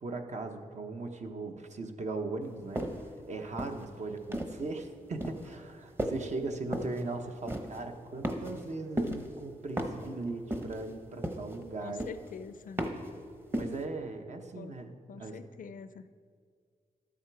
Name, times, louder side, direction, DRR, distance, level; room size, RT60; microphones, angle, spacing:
voice 1, 0.0-12.1 13.5-15.4, right 3 dB, 55° right, 5 dB, 0.9 m, -39 dB
sound 1, 2.7-3.1 3.6-4.7 5.2-5.5 6.0-6.3 6.7-7.0 7.5-7.8 8.2-8.7 9.0-9.3 9.8-10.1 10.5-10.9 11.2-11.6 12.0-12.3 12.8-13.1 13.5-13.8, right 1 dB, 15° right, 0.9 m, -34 dB
voice 2, 11.8-12.8 14.5-14.7 15.1-16.1, left 6 dB, 75° left, 13 dB, 0.5 m, -45 dB
12.5 x 7.3 x 4.7 m, 2.1 s
wide cardioid pair, 125°, 14 cm